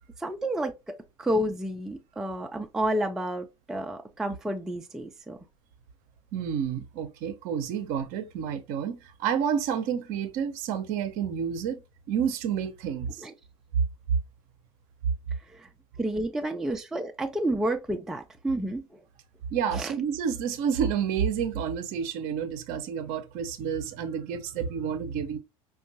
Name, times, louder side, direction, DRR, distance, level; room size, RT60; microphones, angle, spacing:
voice 1, 0.2-5.4 13.2-13.3 15.5-15.7 16.0-19.0 19.7-19.9, right 1 dB, 5° right, 0.4 m, -30 dB
voice 2, 6.3-11.8 12.1-13.2 19.5-25.4, right 7 dB, 45° right, 0.7 m, -29 dB
5.1 x 2.3 x 2.6 m
figure-of-eight pair, 75°, 18 cm